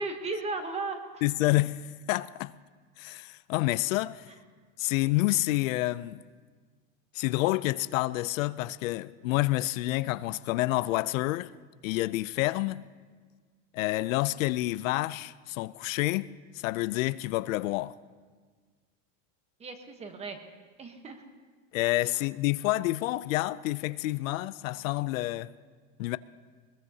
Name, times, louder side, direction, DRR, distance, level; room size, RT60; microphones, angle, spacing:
voice 1, 0.0-1.2 19.6-20.4 20.8-21.2, right 3 dB, 15° right, 1.1 m, -35 dB
voice 2, 1.2-2.5 3.0-4.3 4.8-6.2 7.1-11.5 11.8-12.8 13.7-18.0 21.7-25.5 26.0-26.2, left 18 dB, 85° left, 0.5 m, -28 dB
21.0 x 21.0 x 2.8 m
supercardioid pair, 160°, 39 cm